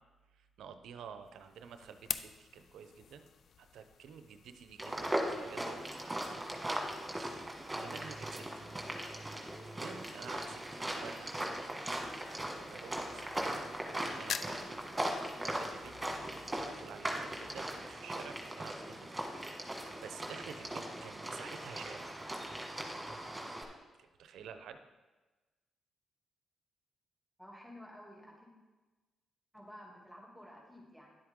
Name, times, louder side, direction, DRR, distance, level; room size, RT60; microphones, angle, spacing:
voice 1, 0.3-3.2 3.6-6.6 7.1-8.6 9.2-11.7 12.2-15.9 16.3-19.1 19.6-22.1 24.0-24.8, right 7 dB, 75° right, 9 dB, 0.7 m, -51 dB
sound 1, 1.2-18.2, left 7 dB, 65° left, 0.4 m, -49 dB
sound 2, 4.8-23.6, right 1 dB, 20° right, 1.9 m, -39 dB
voice 2, 27.4-28.5 29.5-31.2, equal, ahead, -2 dB, 2.6 m, -52 dB
10.5 x 7.8 x 3.7 m, 1.2 s
supercardioid pair, 55°, 0 cm